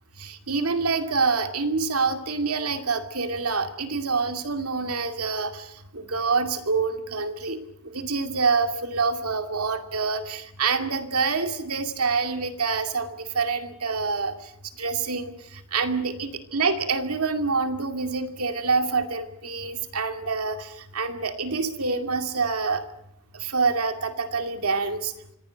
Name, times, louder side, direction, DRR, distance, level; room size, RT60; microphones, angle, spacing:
voice 1, 0.2-14.5 14.8-22.8 23.3-25.1, right 4 dB, 80° right, 6 dB, 2.4 m, -26 dB
25.5 x 16.5 x 9.2 m, 0.83 s
head